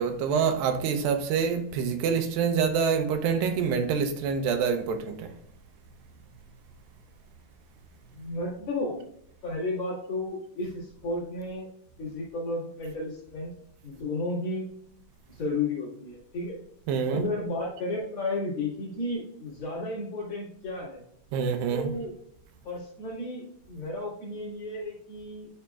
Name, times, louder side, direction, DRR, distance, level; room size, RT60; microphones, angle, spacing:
voice 1, 0.0-5.3 16.9-17.2 21.3-21.9, right 6 dB, 85° right, 2.4 m, -26 dB
voice 2, 8.1-9.0 9.4-11.7 12.0-13.5 13.8-14.7 15.3-16.6 17.1-21.0 21.7-22.1 22.6-25.5, left 2 dB, 50° left, 2.7 m, -33 dB
9.7 x 5.0 x 2.3 m
omnidirectional pair, 4.0 m